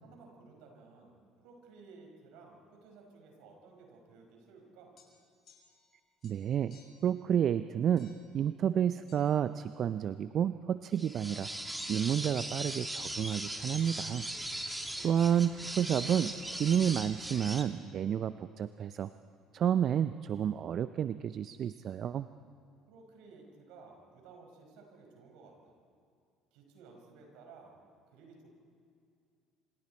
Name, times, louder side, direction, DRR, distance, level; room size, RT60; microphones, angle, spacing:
voice 1, 0.0-5.0 14.8-15.3 22.9-25.8 26.5-27.8 28.1-28.5, right 4 dB, 70° right, 2 dB, 5.3 m, -56 dB
sound 1, 5.0-5.9 6.2-7.1 8.0-8.3 9.1-9.2, left 6 dB, 55° left, 6.2 m, -62 dB
voice 2, 6.2-14.3 14.6-14.8 15.0-19.1 19.5-22.3, right 9 dB, 50° right, 13 dB, 0.6 m, -30 dB
sound 2, 10.9-17.6, right 1 dB, 10° right, 2.5 m, -39 dB
27.0 x 27.0 x 4.4 m, 2.4 s
hypercardioid pair, 65°, 0 cm